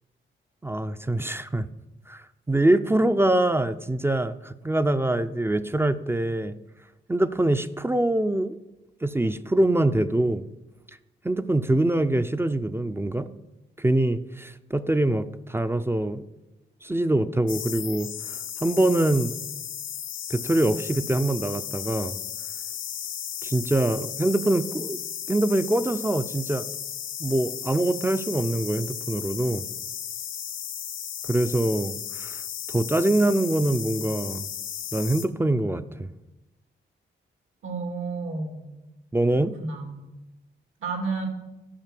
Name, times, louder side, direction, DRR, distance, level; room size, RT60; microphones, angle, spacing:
voice 1, 0.6-1.7 2.1-6.5 7.1-8.6 9.0-10.4 11.2-13.3 13.8-16.3 16.8-19.4 20.3-22.2 23.4-25.0 25.3-26.7 27.2-29.7 31.2-34.5 34.9-36.1 39.1-39.6, right 1 dB, 10° right, 12 dB, 0.4 m, -24 dB
sound 1, 17.5-35.3, left 9 dB, 80° left, 0.7 m, -35 dB
voice 2, 37.6-38.6 39.3-40.1 40.8-41.3, right 4 dB, 85° right, 4 dB, 2.4 m, -31 dB
12.5 x 5.4 x 7.5 m, 1.0 s
wide cardioid pair, 125°, 20 cm